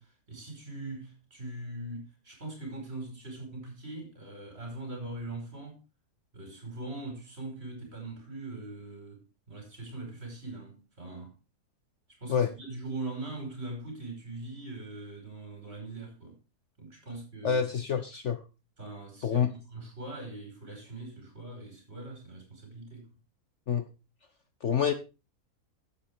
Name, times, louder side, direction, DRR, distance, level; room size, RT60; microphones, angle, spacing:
voice 1, 0.0-5.8 6.3-11.3 12.2-16.4 16.8-17.7 18.8-23.1, right 2 dB, 40° right, 5.3 m, -41 dB
voice 2, 17.4-18.4 19.2-19.5 23.7-23.8 24.6-24.9, left 7 dB, 55° left, 1.1 m, -27 dB
11.5 x 8.3 x 4.6 m
omnidirectional pair, 1.7 m